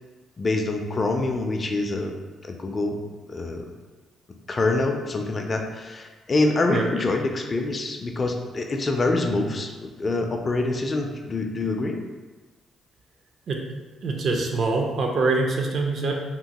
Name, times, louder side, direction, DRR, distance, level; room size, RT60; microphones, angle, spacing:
voice 1, 0.4-2.1 2.4-3.0 3.3-3.7 4.5-12.0, left 2 dB, 35° left, 3 dB, 0.3 m, -25 dB
voice 2, 14.0-16.1, right 3 dB, 60° right, 1 dB, 0.4 m, -24 dB
2.9 x 2.1 x 2.8 m, 1.3 s
cardioid pair, 90°, 0 cm